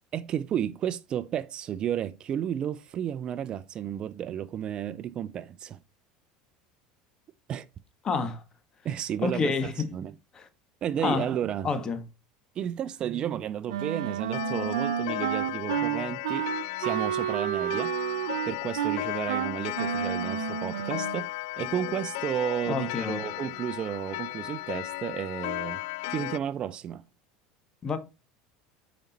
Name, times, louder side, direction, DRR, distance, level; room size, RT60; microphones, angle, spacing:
voice 1, 0.1-5.8 7.5-7.7 8.8-10.1 10.8-11.7 12.6-16.5 16.8-17.9 18.5-21.3 21.6-25.8 26.1-27.0, right 10 dB, 40° right, 0.6 m, -32 dB
voice 2, 8.0-8.4 9.2-9.9 10.3-10.5 11.0-11.3 11.6-12.0 22.7-23.2 27.8-28.0, left 5 dB, 30° left, 1.7 m, -28 dB
Wind instrument woodwind instrument, 13.7-21.3, right 10 dB, 90° right, 0.7 m, -30 dB
Clock, 14.3-26.4, left 20 dB, 75° left, 0.3 m, -35 dB
8.8 x 5.2 x 4.2 m
supercardioid pair, 110°, 2 cm